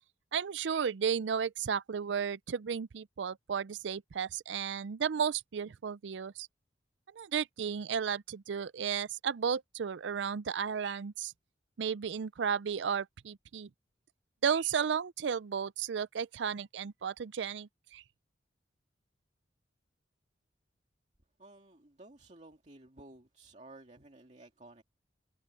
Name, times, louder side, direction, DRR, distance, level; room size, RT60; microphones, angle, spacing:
voice 1, 0.3-6.5 7.1-11.3 11.8-13.7 14.4-18.0, right 7 dB, 80° right, 0.4 m, -33 dB
voice 2, 21.4-24.8, right 2 dB, 40° right, 2.3 m, -54 dB
head